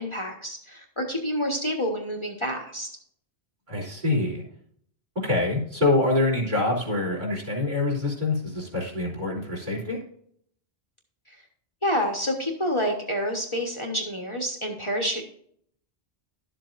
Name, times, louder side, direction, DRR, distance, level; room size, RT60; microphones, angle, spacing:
voice 1, 0.0-2.9 11.3-11.4 11.8-15.3, equal, 30° left, 1 dB, 1.2 m, -28 dB
voice 2, 3.7-4.4 5.2-10.0, left 2 dB, 45° right, -3 dB, 3.5 m, -25 dB
12.0 x 7.6 x 2.5 m, 0.64 s
omnidirectional pair, 1.1 m